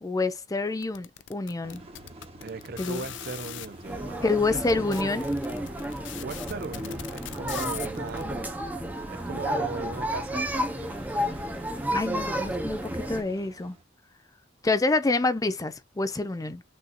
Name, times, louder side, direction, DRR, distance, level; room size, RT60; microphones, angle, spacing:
voice 1, 0.0-1.8 2.8-3.0 4.2-5.3 11.9-13.8 14.6-16.6, left 3 dB, 20° left, 0.5 m, -27 dB
sound 1, 0.8-3.7 4.4-4.5 4.7-8.2, left 12 dB, 70° left, 0.5 m, -40 dB
sound 2, 1.6-13.8, right 1 dB, 35° right, 1.2 m, -47 dB
voice 2, 2.4-4.6 6.2-8.5 9.1-10.9, right 4 dB, 55° right, 0.6 m, -38 dB
sound 3, 3.9-13.2, equal, 10° right, 0.9 m, -32 dB
6.3 x 2.8 x 2.5 m
head